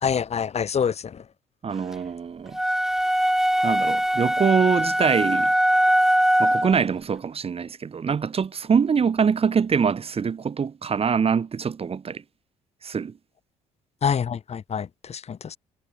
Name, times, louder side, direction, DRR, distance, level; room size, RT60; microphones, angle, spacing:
voice 1, 0.0-1.2 14.0-15.6, left 7 dB, 40° left, 1.1 m, -26 dB
voice 2, 1.6-2.6 3.6-5.5 6.4-12.2 12.8-13.1, right 6 dB, 35° right, 1.2 m, -24 dB
sound 1, 2.5-6.8, equal, ahead, 1.1 m, -21 dB
hypercardioid pair, 55°, 16 cm